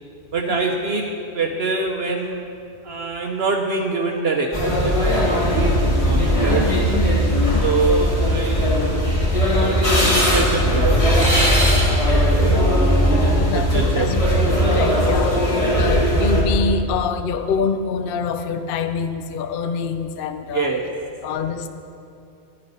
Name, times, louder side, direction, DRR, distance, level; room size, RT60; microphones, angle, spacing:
voice 1, 0.3-2.4 2.8-6.6 7.6-8.8 9.5-11.0 12.1-12.6 13.4-14.1 20.5-20.9, right 4 dB, 60° right, 2 dB, 1.0 m, -25 dB
sound 1, 4.5-16.4, equal, 25° left, 1.7 m, -18 dB
voice 2, 13.3-20.7 21.2-21.7, left 5 dB, 55° left, 9 dB, 0.7 m, -26 dB
11.0 x 11.0 x 5.4 m, 2.6 s
omnidirectional pair, 1.3 m